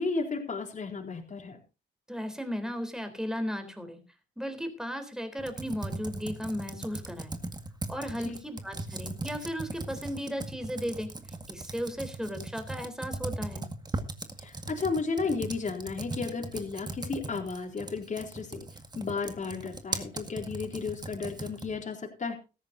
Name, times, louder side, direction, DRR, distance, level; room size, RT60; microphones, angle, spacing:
voice 1, 0.0-1.6 8.2-8.4 14.4-18.7 18.9-22.3, left 4 dB, 40° left, 2 dB, 3.9 m, -33 dB
voice 2, 2.1-4.0 4.4-7.4 7.9-11.1 11.5-13.7, equal, 5° right, 8 dB, 3.8 m, -35 dB
Computer keyboard, 5.4-21.8, right 2 dB, 20° right, 1.9 m, -39 dB
17.0 x 14.0 x 2.7 m, 0.31 s
cardioid pair, 90°, 20 cm